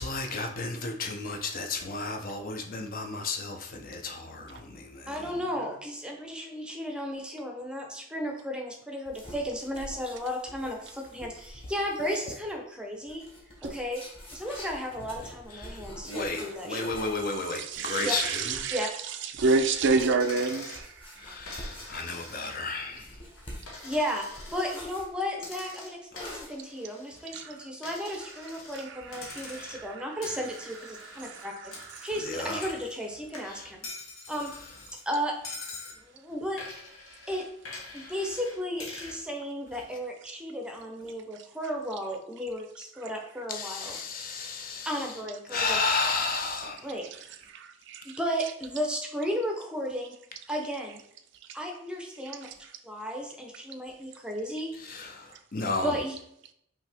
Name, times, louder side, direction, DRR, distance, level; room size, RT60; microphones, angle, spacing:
voice 1, 0.0-5.3 15.2-18.6 21.2-23.2 26.1-26.3 29.3-29.8 32.2-32.8 33.4-33.7 37.9-38.2 43.5-45.2 45.5-46.9 54.8-55.9, left 3 dB, 40° left, 0.6 m, -33 dB
voice 2, 5.1-13.2 13.6-14.0 14.3-16.9 18.0-18.1 18.7-18.9 23.8-24.2 24.5-31.5 32.0-33.8 34.3-34.5 35.1-35.3 35.9-36.6 37.3-37.4 37.9-44.0 44.8-45.8 46.8-47.0 48.0-50.2 50.5-51.0 51.5-52.5 52.8-54.7 55.8-56.1, equal, 5° right, 0.6 m, -34 dB
sound 1, 9.1-12.5 13.1-18.8 19.4-20.2 20.7-22.2 22.9-25.1 26.1-26.5, equal, 25° left, 1.1 m, -46 dB
voice 3, 17.5-18.9 19.2-21.3 21.8-22.0 27.3-27.6 28.7-30.1 30.9-32.1 47.5-48.2 52.4-52.5, right 4 dB, 55° right, 0.4 m, -30 dB
Coin (dropping), 20.2-20.9 21.5-22.8 23.1-24.8 25.4-27.4 27.8-28.9 29.1-29.9 30.2-33.1 33.3-35.0 35.4-36.0 36.6-39.2, left 3 dB, 80° left, 1.2 m, -45 dB
5.4 x 2.8 x 3.4 m
head